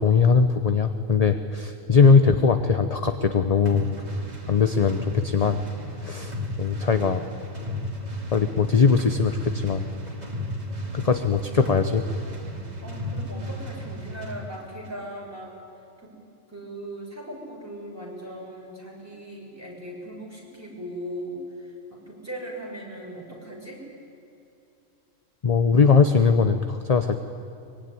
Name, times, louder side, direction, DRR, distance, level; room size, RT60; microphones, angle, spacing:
voice 1, 0.0-3.9 4.5-5.6 6.0-7.3 8.3-9.9 10.9-12.0 25.4-27.2, left 5 dB, 35° left, 8 dB, 0.9 m, -20 dB
sound 1, 3.6-14.4, equal, 30° right, 2.6 m, -34 dB
voice 2, 12.8-15.5 16.0-16.1 16.5-23.8, right 1 dB, 10° right, -2 dB, 6.0 m, -38 dB
24.0 x 22.0 x 9.7 m, 2.7 s
omnidirectional pair, 1.3 m